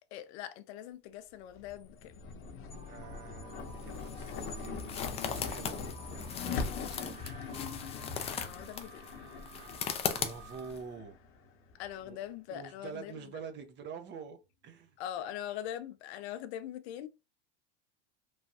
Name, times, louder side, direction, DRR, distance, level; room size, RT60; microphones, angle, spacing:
voice 1, 0.1-2.1 8.3-9.1 11.7-13.1 15.0-17.1, left 11 dB, 70° left, 0.5 m, -42 dB
sound 1, 1.5-12.0, left 5 dB, 40° left, 0.8 m, -42 dB
sound 2, 2.7-10.7, right 4 dB, 60° right, 1.4 m, -55 dB
voice 2, 2.8-7.7 9.5-9.7 10.1-11.2 12.0-12.2 12.5-15.0, right 5 dB, 35° right, 0.6 m, -47 dB
sound 3, 3.6-10.8, left 7 dB, 20° left, 0.3 m, -39 dB
3.1 x 2.2 x 2.7 m
supercardioid pair, 115°, 34 cm